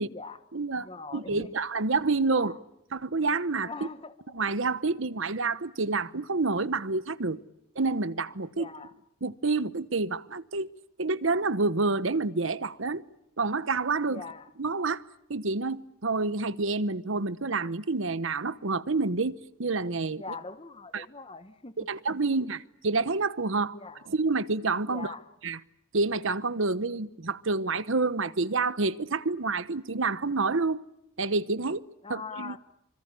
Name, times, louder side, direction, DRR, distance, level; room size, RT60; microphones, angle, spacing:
voice 1, 0.0-0.4 0.7-1.6 2.3-2.6 3.6-4.1 8.5-8.9 14.1-14.5 20.2-21.9 23.7-24.1 24.9-25.3 32.0-32.6, left 4 dB, 25° left, 1.2 m, -42 dB
voice 2, 0.5-2.5 2.9-3.7 4.3-7.4 7.8-8.7 9.2-10.7 11.0-13.0 13.4-14.2 14.6-15.0 15.3-20.2 20.9-21.1 21.9-23.8 24.1-25.1 25.4-25.6 25.9-30.8 31.2-31.8 32.1-32.6, right 3 dB, 65° right, 1.0 m, -28 dB
26.0 x 25.5 x 8.4 m
head